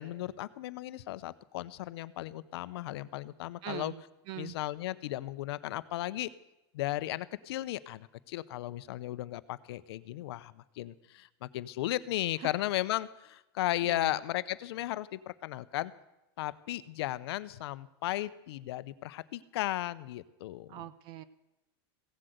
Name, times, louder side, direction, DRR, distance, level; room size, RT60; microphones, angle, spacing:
voice 1, 0.0-3.9 4.4-6.3 6.7-15.9 16.4-20.8, left 15 dB, 75° left, 16 dB, 0.7 m, -35 dB
voice 2, 3.6-4.6 13.8-14.2 20.7-21.2, right 13 dB, 35° right, 16 dB, 0.5 m, -42 dB
16.5 x 7.8 x 7.9 m, 0.93 s
supercardioid pair, 165°, 14 cm